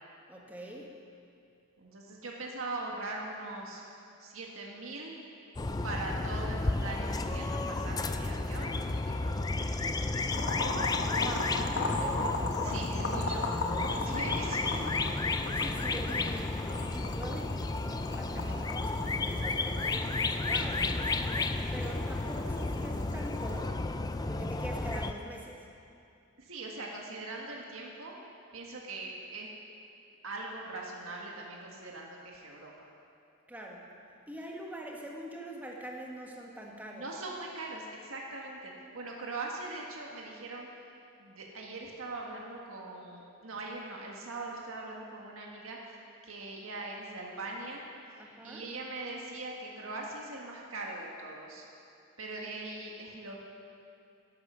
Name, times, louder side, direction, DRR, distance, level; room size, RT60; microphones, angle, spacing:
voice 1, 0.3-0.9 11.1-11.6 14.0-14.4 14.7-14.9 15.5-17.6 18.1-20.9 21.7-23.8 24.3-25.7 33.5-33.9 34.3-37.1 48.2-48.7, right 1 dB, 10° right, -1 dB, 1.4 m, -44 dB
voice 2, 1.8-3.8 4.2-5.2 5.8-10.0 12.6-13.5 13.9-14.6 26.4-28.1 28.5-29.5 30.2-32.9 36.9-40.7 41.2-45.8 46.2-47.9 48.4-51.6 52.2-53.4, right 2 dB, 80° right, -1 dB, 1.7 m, -41 dB
sound 1, 5.6-25.1, left 3 dB, 20° left, 0.4 m, -32 dB
Boiling, 10.3-23.6, left 2 dB, 55° left, 1.3 m, -38 dB
11.5 x 11.5 x 6.3 m, 2.5 s
head